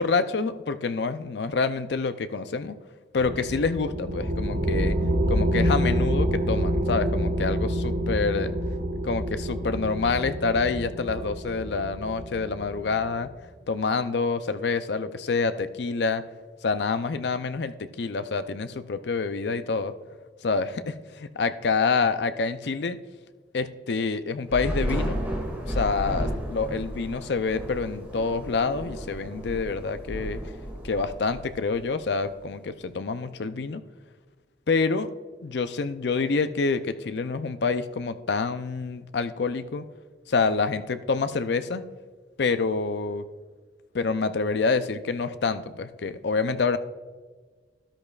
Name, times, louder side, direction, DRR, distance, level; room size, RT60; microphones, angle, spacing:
voice 1, 0.0-2.8 3.1-5.0 5.3-8.5 9.0-13.3 13.7-16.2 16.6-19.9 20.4-23.0 23.5-25.2 25.7-30.4 30.8-33.8 34.7-35.1 35.4-39.8 40.3-41.9 42.4-43.2 43.9-46.8, left 4 dB, 70° left, 11 dB, 0.5 m, -27 dB
sound 1, 3.2-13.2, equal, 85° right, 1.6 m, -27 dB
Thunder / Rain, 24.5-32.0, equal, 10° right, 2.6 m, -33 dB
13.0 x 11.0 x 2.4 m, 1.4 s
head